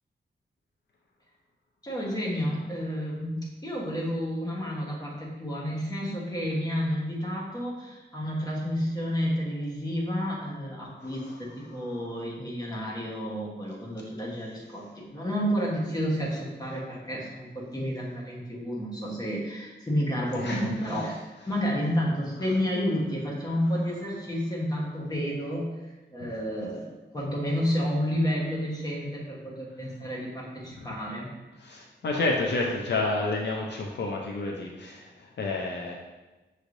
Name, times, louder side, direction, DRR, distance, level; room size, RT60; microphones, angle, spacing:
voice 1, 1.8-25.7 26.1-31.3, equal, 20° left, -3 dB, 1.1 m, -30 dB
voice 2, 11.0-11.4 20.4-20.7 30.8-30.9 31.6-35.9, left 2 dB, 70° left, -1 dB, 0.5 m, -30 dB
6.2 x 3.2 x 2.6 m, 1.1 s
wide cardioid pair, 125°, 19 cm